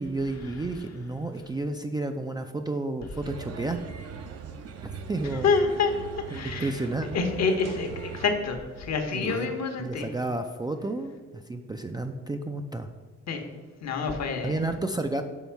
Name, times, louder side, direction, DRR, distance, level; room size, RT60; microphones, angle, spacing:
voice 1, 0.0-3.8 4.8-5.5 6.3-7.1 9.1-9.5 9.8-12.9 14.4-15.2, right 2 dB, 15° right, 6 dB, 0.3 m, -31 dB
sound 1, 3.2-8.4, right 6 dB, 55° right, 0.6 m, -40 dB
voice 2, 5.4-5.9 6.3-6.7 7.1-10.1 13.3-13.4 13.8-14.6, left 4 dB, 60° left, 5 dB, 0.9 m, -27 dB
5.5 x 4.1 x 4.5 m, 1.5 s
cardioid pair, 90°, 30 cm